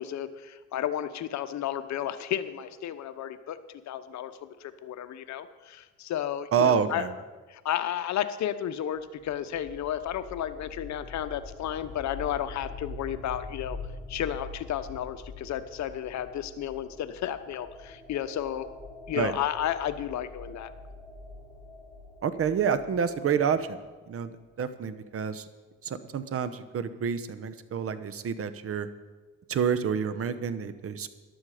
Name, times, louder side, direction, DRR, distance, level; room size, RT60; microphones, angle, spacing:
voice 1, 0.0-3.6 3.9-7.0 7.5-13.8 14.1-18.7 19.1-20.7, left 10 dB, 60° left, 12 dB, 1.0 m, -32 dB
voice 2, 6.5-7.1 19.1-19.3 22.2-23.8 24.1-25.5 25.8-28.9 29.5-31.1, right 7 dB, 45° right, 13 dB, 1.0 m, -28 dB
sound 1, 9.0-23.8, left 3 dB, 10° left, 5.2 m, -45 dB
14.5 x 11.5 x 5.0 m, 1.3 s
supercardioid pair, 90°, 32 cm